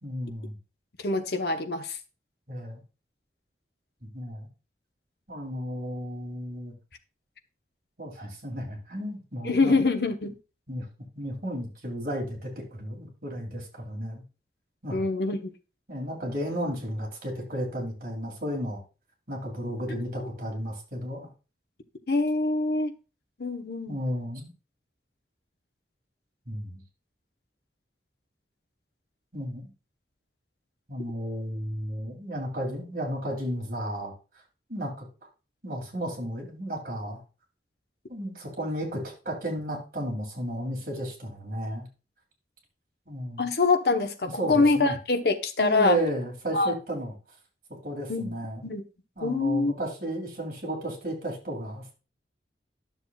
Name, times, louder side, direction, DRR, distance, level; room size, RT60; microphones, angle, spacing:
voice 1, 0.0-0.6 2.5-2.8 4.0-4.5 5.3-6.7 8.0-9.7 10.7-10.8 11.1-14.2 14.8-15.0 15.9-18.8 19.3-21.3 23.9-24.5 26.5-26.8 29.3-29.7 30.9-34.1 34.7-35.1 35.6-37.2 38.1-41.9 43.1-43.5 44.2-44.9 45.6-47.1 47.8-48.7 49.2-51.9, equal, 55° right, 2.7 m, -33 dB
voice 2, 1.0-2.0 9.4-10.3 14.9-15.5 19.9-20.0 22.1-22.9 23.4-24.0 43.4-46.0 46.5-46.7 48.1-48.3 48.6-48.8 49.2-49.7, left 3 dB, 65° left, 0.9 m, -25 dB
12.0 x 6.9 x 2.3 m
head